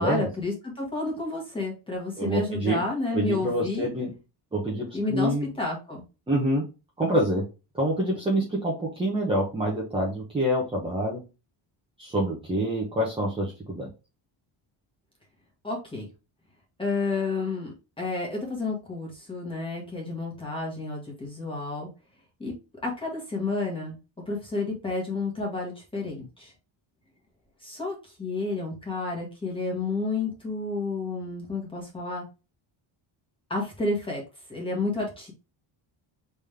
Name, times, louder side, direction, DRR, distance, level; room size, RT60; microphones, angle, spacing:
voice 1, 0.0-3.9 4.9-6.0 15.6-16.1 16.8-21.9 22.4-22.5 22.8-24.0 24.3-26.5 27.6-32.2 33.5-34.2 34.5-35.3, left 3 dB, 10° left, -2 dB, 1.6 m, -30 dB
voice 2, 2.2-2.8 3.1-4.1 4.5-5.5 6.3-6.6 7.0-7.4 7.8-11.2 12.0-13.9, right 1 dB, 10° right, -4 dB, 1.0 m, -26 dB
4.1 x 3.6 x 3.4 m, 0.30 s
cardioid pair, 180°, 48 cm